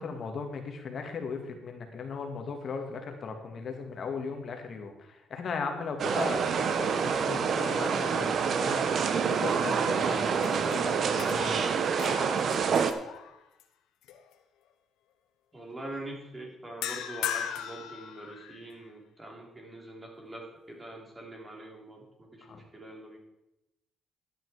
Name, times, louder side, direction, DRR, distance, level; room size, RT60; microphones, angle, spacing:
voice 1, 0.0-11.6 22.4-22.6, left 5 dB, 55° left, 4 dB, 1.8 m, -37 dB
sound 1, 6.0-12.9, right 6 dB, 60° right, 1.0 m, -27 dB
sound 2, 9.3-10.0 10.3-13.6 14.1-14.3 16.8-18.8, left 10 dB, 90° left, 0.9 m, -39 dB
voice 2, 15.5-23.2, right 1 dB, 20° right, 0 dB, 3.9 m, -44 dB
12.5 x 9.0 x 4.7 m, 0.90 s
cardioid pair, 90°, 0 cm